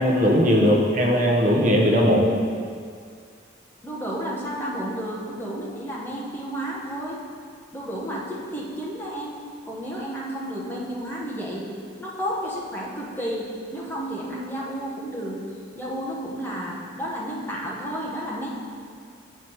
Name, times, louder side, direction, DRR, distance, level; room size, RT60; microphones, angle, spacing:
voice 1, 0.0-2.3, equal, 40° right, -1 dB, 0.9 m, -19 dB
voice 2, 3.8-7.2 7.7-9.4 9.6-11.7 12.0-15.4 15.7-18.5, equal, 10° left, -5 dB, 1.0 m, -31 dB
7.9 x 4.5 x 4.6 m, 2.1 s
head